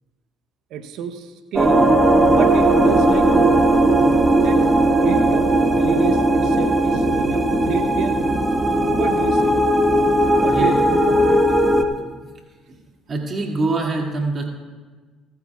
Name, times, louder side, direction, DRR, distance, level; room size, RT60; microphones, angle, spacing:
voice 1, 0.7-1.8 2.3-3.3 4.4-4.6 5.0-8.2 9.0-9.5 10.3-11.4, right 8 dB, 70° right, 7 dB, 0.9 m, -29 dB
sound 1, 1.6-11.8, right 1 dB, 15° right, 1.4 m, -17 dB
voice 2, 13.1-14.5, right 3 dB, 40° right, 1 dB, 2.3 m, -24 dB
19.5 x 14.5 x 2.4 m, 1.3 s
hypercardioid pair, 65°, 0 cm